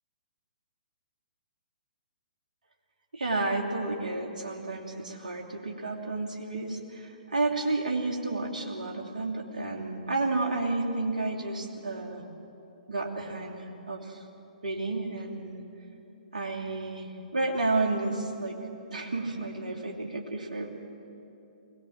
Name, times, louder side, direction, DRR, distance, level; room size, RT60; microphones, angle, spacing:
voice 1, 3.1-12.2 12.9-14.2 14.6-15.6 16.3-18.5 18.9-20.7, right 2 dB, 60° right, 0 dB, 2.8 m, -31 dB
21.5 x 18.0 x 7.3 m, 2.9 s
figure-of-eight pair, 120°, 4 cm